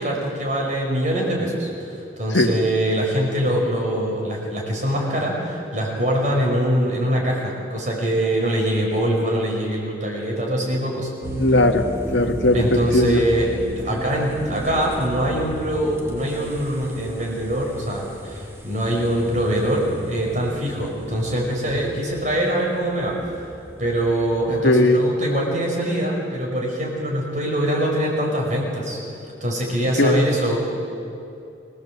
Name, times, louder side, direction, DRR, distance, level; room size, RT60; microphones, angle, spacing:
voice 1, 0.0-11.1 12.5-23.4 23.8-29.0 29.4-30.6, right 1 dB, 40° right, -1 dB, 5.7 m, -23 dB
sound 1, 11.2-24.8, equal, 15° right, 1.4 m, -34 dB
voice 2, 11.4-11.9 12.1-13.2 24.6-25.0 30.0-30.2, left 1 dB, 80° left, 4 dB, 1.7 m, -18 dB
26.0 x 17.5 x 7.9 m, 2.6 s
head